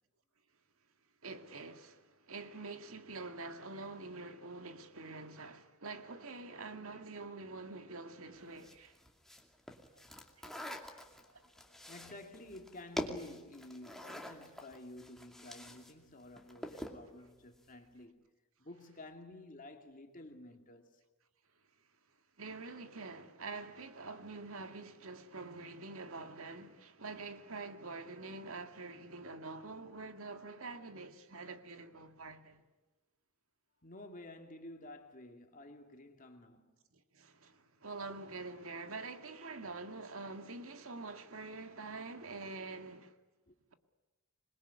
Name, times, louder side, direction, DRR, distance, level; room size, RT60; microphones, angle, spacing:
voice 1, 1.2-9.0 9.9-10.0 10.4-10.5 11.2-11.4 22.4-32.6 37.1-43.1, right 3 dB, 70° right, 2.0 m, -46 dB
sound 1, 8.6-15.9 16.2-17.1, equal, ahead, 2.5 m, -45 dB
voice 2, 10.6-18.2 18.6-21.0 33.8-36.8 43.5-43.6, left 1 dB, 40° left, 2.5 m, -52 dB
27.0 x 22.0 x 9.7 m
head